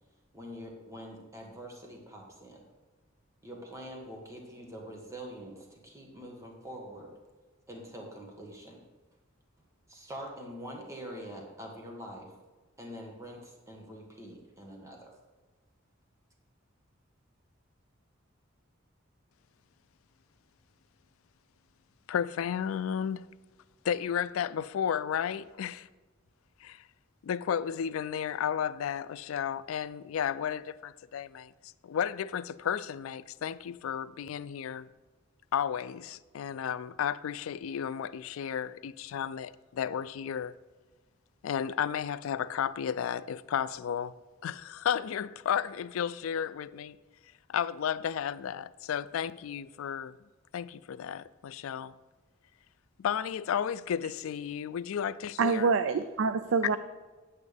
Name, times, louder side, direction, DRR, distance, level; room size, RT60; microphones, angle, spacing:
voice 1, 0.3-2.6 3.4-7.1 7.7-8.8 9.9-12.3 12.8-15.1, equal, 15° right, 1.3 m, -45 dB
voice 2, 22.1-23.2 23.8-25.9 26.6-26.8 27.2-34.9 35.5-40.5 41.4-44.2 44.4-47.0 47.5-50.1 50.5-51.9 53.0-55.7, left 8 dB, 85° left, 0.3 m, -33 dB
voice 3, 55.4-56.8, right 5 dB, 70° right, 0.4 m, -26 dB
9.4 x 8.6 x 3.4 m
head